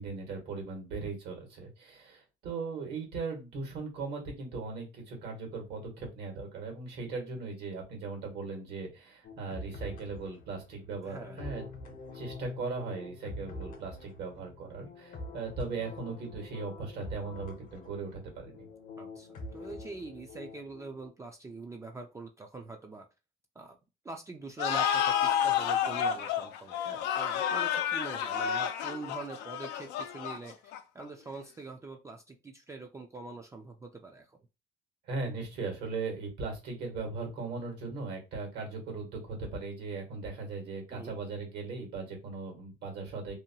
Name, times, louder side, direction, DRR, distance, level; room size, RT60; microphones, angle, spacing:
voice 1, 0.0-18.7 35.1-43.4, right 4 dB, 80° right, 2 dB, 1.4 m, -38 dB
sound 1, 9.2-21.1, left 2 dB, 55° left, 0.7 m, -46 dB
voice 2, 11.1-11.4 19.0-23.1 23.6-23.8 24.0-30.5 30.9-34.4 40.9-41.1, right 3 dB, 15° right, 3 dB, 0.4 m, -44 dB
sound 2, 24.6-31.0, left 9 dB, 90° left, 0.4 m, -30 dB
2.8 x 2.2 x 2.7 m, 0.28 s
cardioid pair, 110°, 17 cm